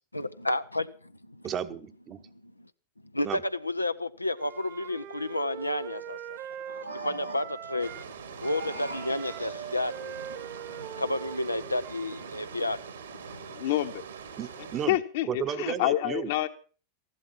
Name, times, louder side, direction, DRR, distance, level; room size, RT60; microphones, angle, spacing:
voice 1, 0.1-1.5 2.2-2.7 3.1-6.4 6.9-8.1 8.4-10.2 10.7-12.8 13.1-13.5, left 1 dB, 85° left, 0.6 m, -31 dB
voice 2, 1.4-2.2 3.2-3.4 14.4-15.0 15.3-16.3, right 8 dB, 30° right, 1.0 m, -33 dB
Wind instrument woodwind instrument, 4.3-8.1 8.4-12.3, right 10 dB, 45° right, 1.4 m, -42 dB
sound 1, 6.4-7.7 8.3-9.9, right 1 dB, 90° right, 4.9 m, -42 dB
sound 2, 7.8-14.9, right 6 dB, 65° right, 2.3 m, -43 dB
voice 3, 13.6-14.0 14.9-16.5, left 14 dB, 55° left, 1.2 m, -27 dB
15.0 x 11.5 x 5.9 m
figure-of-eight pair, 90°, 0 cm